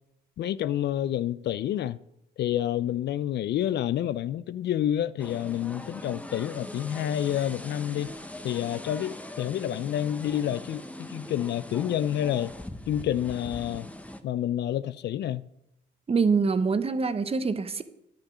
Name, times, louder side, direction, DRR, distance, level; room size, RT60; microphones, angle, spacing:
voice 1, 0.4-2.0 2.4-8.1 8.4-12.5 12.9-13.9 14.2-15.4, left 11 dB, 60° left, 0.4 m, -29 dB
sound 1, 5.2-14.2, left 1 dB, 5° left, 0.7 m, -41 dB
voice 2, 16.1-17.8, right 5 dB, 30° right, 0.7 m, -25 dB
10.0 x 5.8 x 6.2 m
cardioid pair, 90°, 20 cm